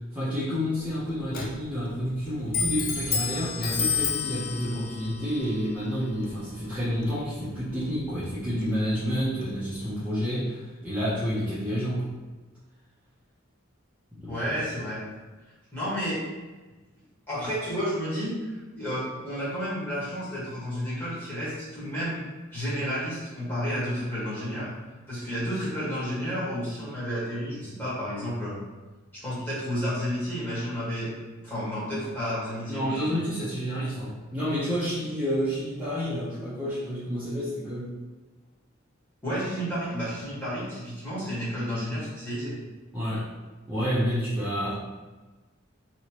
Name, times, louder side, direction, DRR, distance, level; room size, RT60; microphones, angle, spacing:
voice 1, 0.1-12.1 14.1-14.4 32.7-37.9 42.9-43.3 43.7-44.7, equal, 5° right, -13 dB, 0.8 m, -29 dB
Clock, 0.7-10.0, left 5 dB, 45° left, 0.4 m, -33 dB
voice 2, 14.3-15.0 15.7-16.2 17.3-18.4 18.7-22.2 22.5-24.7 25.1-28.6 29.1-31.2 31.4-33.1 39.2-42.6, equal, 10° left, -11 dB, 1.5 m, -31 dB
3.0 x 2.9 x 2.9 m, 1.2 s
head